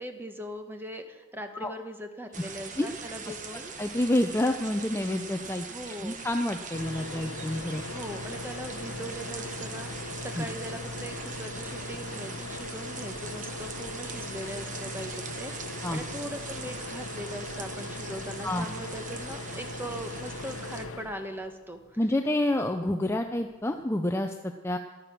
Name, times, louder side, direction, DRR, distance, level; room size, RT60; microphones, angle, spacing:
voice 1, 0.0-3.7 5.7-6.2 7.9-22.0, equal, 10° right, 6 dB, 1.2 m, -40 dB
sound 1, 2.3-20.8, right 5 dB, 35° right, 1.1 m, -41 dB
voice 2, 3.3-5.7 6.0-7.8 10.4-10.5 15.8-16.0 18.4-18.7 22.0-24.8, left 1 dB, 10° left, 5 dB, 0.5 m, -28 dB
sound 2, 6.7-22.0 23.7-23.8 24.1-24.2, left 2 dB, 75° left, 0.9 m, -39 dB
14.0 x 12.0 x 6.0 m, 1.2 s
head